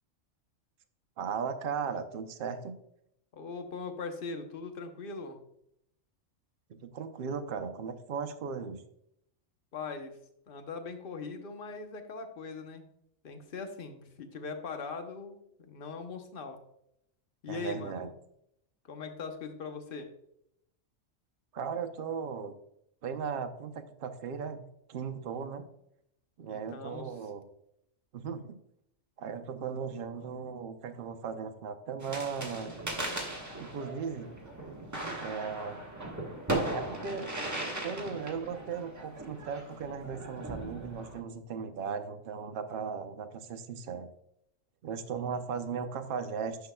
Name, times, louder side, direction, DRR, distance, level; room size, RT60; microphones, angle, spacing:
voice 1, 1.2-2.7 6.7-8.8 17.5-18.1 21.5-22.5 23.0-25.7 26.4-27.4 28.1-28.6 29.2-32.7 33.6-34.4 35.2-35.8 36.7-37.3 37.8-44.1 44.8-46.6, right 6 dB, 55° right, 7 dB, 0.7 m, -37 dB
voice 2, 3.3-5.4 9.7-10.1 10.5-12.9 13.2-15.4 15.7-16.6 17.4-18.1 18.8-20.1 26.5-27.1, left 4 dB, 50° left, 6 dB, 1.0 m, -40 dB
sound 1, 32.0-41.2, right 2 dB, 15° right, 1.2 m, -38 dB
10.5 x 5.7 x 2.3 m, 0.76 s
omnidirectional pair, 1.3 m